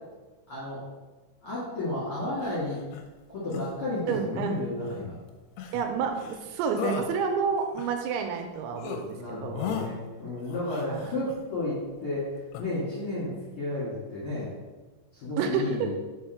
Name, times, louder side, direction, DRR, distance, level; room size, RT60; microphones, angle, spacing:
voice 1, 0.5-0.8 1.4-2.8 3.3-5.2 9.2-14.5 15.1-15.9, left 2 dB, 55° left, -9 dB, 1.7 m, -32 dB
sound 1, 2.4-3.1 3.5-3.7 4.8-5.1 5.6-5.9 6.2-6.5 6.8-7.1 7.6-8.5 8.8-9.0 9.5-9.9 10.5-11.4 12.5-12.6, left 7 dB, 80° left, 2.5 m, -36 dB
voice 2, 4.1-4.9 5.7-9.8 10.9-11.0 13.2-13.4 15.4-15.9, right 6 dB, 90° right, 5 dB, 3.0 m, -30 dB
6.1 x 4.4 x 4.6 m, 1.2 s
omnidirectional pair, 5.3 m